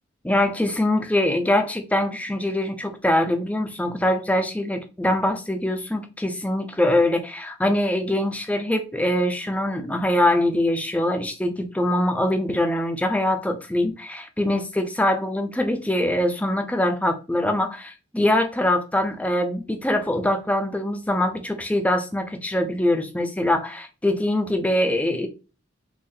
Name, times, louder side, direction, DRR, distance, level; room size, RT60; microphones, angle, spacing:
voice 1, 0.2-25.3, left 1 dB, 5° left, 0.5 m, -23 dB
3.9 x 3.1 x 2.6 m
head